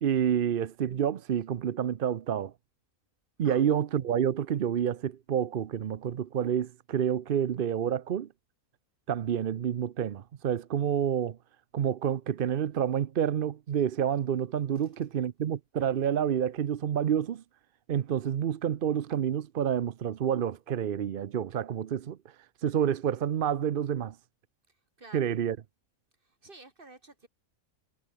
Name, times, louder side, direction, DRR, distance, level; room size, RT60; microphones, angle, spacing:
voice 1, 0.0-2.5 3.4-8.3 9.1-11.4 11.7-17.4 17.9-22.2 22.6-24.2 25.1-25.6, right 9 dB, 55° right, 0.6 m, -28 dB
voice 2, 25.0-25.4 26.2-27.3, right 2 dB, 35° right, 3.2 m, -51 dB
omnidirectional pair, 1.5 m